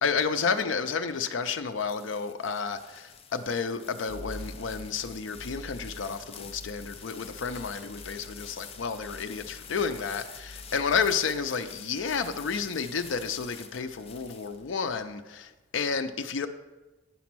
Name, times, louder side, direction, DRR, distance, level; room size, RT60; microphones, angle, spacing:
voice 1, 0.0-16.5, left 5 dB, 90° left, 0.5 m, -31 dB
sound 1, 1.3-14.9, left 7 dB, 30° left, 0.5 m, -48 dB
sound 2, 4.1-15.0, right 1 dB, 65° right, 0.6 m, -48 dB
9.6 x 4.1 x 6.0 m
head